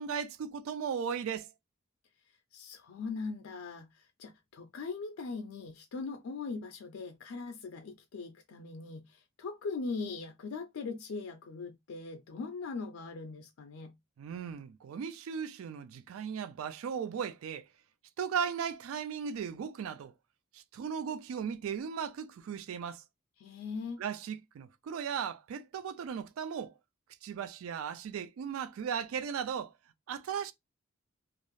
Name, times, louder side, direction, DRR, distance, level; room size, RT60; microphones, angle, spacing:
voice 1, 0.0-1.5 14.2-17.7 18.2-20.1 20.5-23.0 24.0-26.8 27.2-29.7 30.1-30.5, right 7 dB, 85° right, 0.3 m, -37 dB
voice 2, 2.5-14.0 23.4-24.0, left 4 dB, 85° left, 0.4 m, -40 dB
2.5 x 2.0 x 3.0 m
head